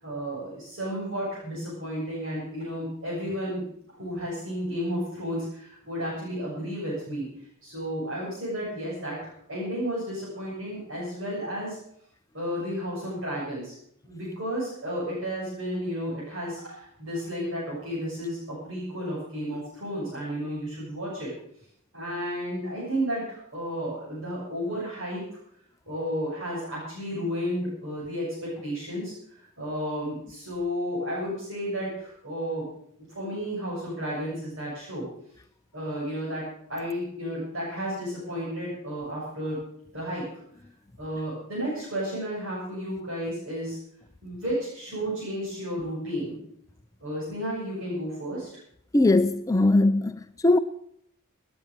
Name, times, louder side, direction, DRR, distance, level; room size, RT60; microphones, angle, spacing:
voice 1, 0.0-3.6 4.0-7.3 7.6-11.8 12.3-13.7 14.0-21.3 21.9-25.2 25.9-29.1 29.6-32.7 33.1-35.1 35.7-39.6 39.9-40.3 41.0-43.8 44.2-46.4 47.0-48.5, equal, 65° right, 7.2 m, -32 dB
voice 2, 48.9-50.6, left 2 dB, 15° left, 0.5 m, -20 dB
18.5 x 9.5 x 6.6 m
head